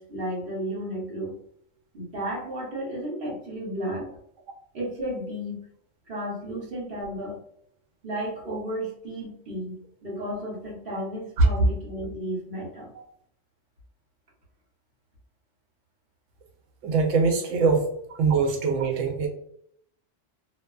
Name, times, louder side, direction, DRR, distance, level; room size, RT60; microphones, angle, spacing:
voice 1, 0.0-1.3 1.9-4.1 4.7-5.6 6.1-7.4 8.0-9.7 10.0-12.9, right 1 dB, 50° right, -5 dB, 1.1 m, -33 dB
voice 2, 16.8-17.9 18.2-19.3, right 4 dB, 80° right, 3 dB, 0.9 m, -22 dB
2.4 x 2.3 x 2.3 m, 0.68 s
omnidirectional pair, 1.3 m